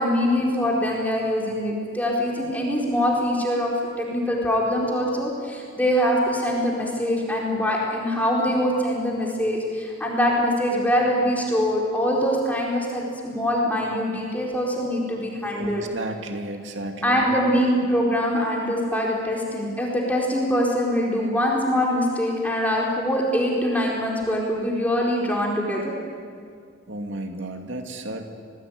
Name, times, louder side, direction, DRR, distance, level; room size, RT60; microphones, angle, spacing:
voice 1, 0.0-3.7 4.0-15.8 17.0-25.9, equal, 10° left, -3 dB, 4.5 m, -23 dB
voice 2, 15.6-17.5 26.9-28.2, right 1 dB, 65° right, 4 dB, 2.4 m, -33 dB
27.5 x 19.5 x 9.6 m, 2.2 s
head